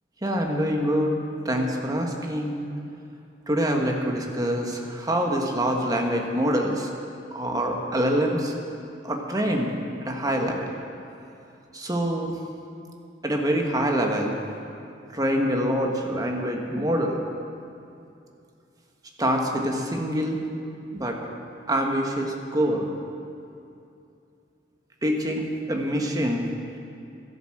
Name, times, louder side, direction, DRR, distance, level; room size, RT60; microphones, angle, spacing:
voice 1, 0.2-1.2 1.4-2.7 3.5-6.9 7.3-8.5 9.0-9.7 10.0-10.7 11.7-12.3 13.2-14.3 15.1-17.2 19.2-20.4 20.9-21.2 21.7-22.9 25.0-26.5, equal, 20° right, 1 dB, 1.4 m, -25 dB
12.5 x 11.0 x 7.7 m, 2.6 s
head